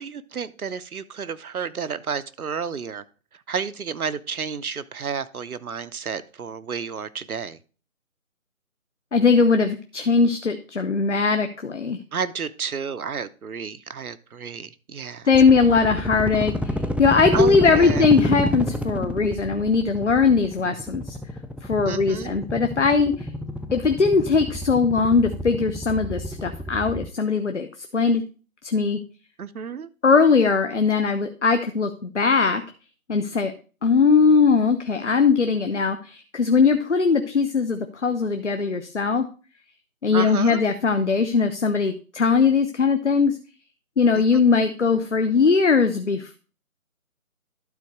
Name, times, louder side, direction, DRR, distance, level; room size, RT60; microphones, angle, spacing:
voice 1, 0.0-3.0 3.5-7.6 12.1-15.3 17.3-18.1 21.9-22.4 29.4-29.9 40.1-40.6 44.2-44.4, right 6 dB, 80° right, 0.8 m, -31 dB
voice 2, 9.1-12.0 15.3-21.2 21.6-23.3 23.7-27.7 27.9-28.2 28.6-29.0 30.0-32.6 33.1-33.5 33.8-39.2 40.0-43.4 44.0-46.4, left 5 dB, 55° left, 0.7 m, -20 dB
sound 1, 15.3-27.1, equal, 5° right, 0.3 m, -30 dB
12.0 x 4.1 x 4.6 m
figure-of-eight pair, 180°, 43 cm